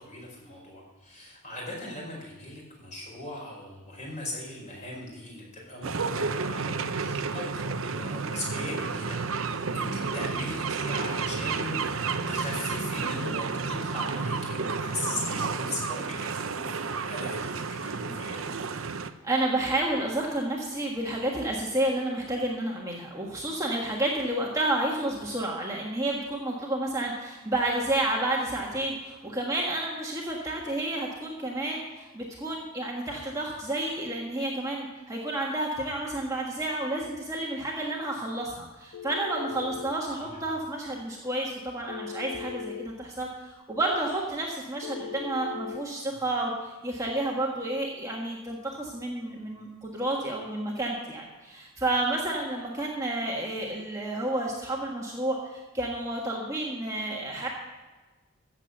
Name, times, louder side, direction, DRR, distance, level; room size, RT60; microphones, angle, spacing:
voice 1, 0.0-18.4 40.2-40.4, left 1 dB, 30° left, -2 dB, 4.7 m, -39 dB
sound 1, 5.8-19.1, right 4 dB, 65° right, 0.7 m, -31 dB
voice 2, 19.2-57.5, right 1 dB, 15° right, -2 dB, 1.4 m, -30 dB
Telephone, 38.9-40.0 41.9-42.9 44.8-45.9, left 7 dB, 65° left, 0.6 m, -38 dB
14.5 x 7.6 x 6.5 m, 1.2 s
head